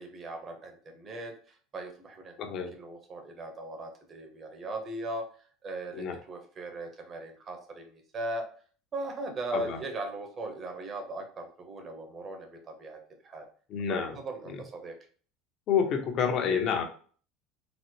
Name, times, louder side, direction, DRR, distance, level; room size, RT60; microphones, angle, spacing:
voice 1, 0.0-2.4 2.7-5.2 5.6-8.5 8.9-13.0 13.2-13.5 14.1-14.9, right 2 dB, 35° right, 4 dB, 0.9 m, -38 dB
voice 2, 2.4-2.7 5.9-6.2 9.5-9.8 13.7-14.2 14.5-14.6 15.7-16.8, left 7 dB, 50° left, 4 dB, 0.7 m, -28 dB
4.0 x 2.1 x 3.1 m, 0.43 s
supercardioid pair, 110°, 0 cm